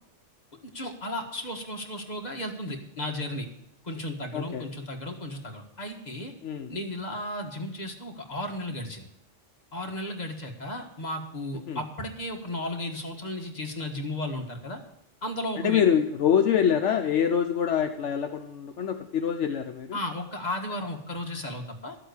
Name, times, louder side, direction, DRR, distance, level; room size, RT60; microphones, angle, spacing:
voice 1, 0.6-3.5 3.8-6.3 6.7-9.1 9.7-14.8 15.2-15.8 19.9-22.0, left 1 dB, 35° left, 2 dB, 1.8 m, -34 dB
voice 2, 4.3-4.6 6.4-6.7 11.7-11.8 15.6-20.0, left 8 dB, 70° left, 6 dB, 1.1 m, -25 dB
12.5 x 8.0 x 8.1 m, 0.79 s
omnidirectional pair, 1.3 m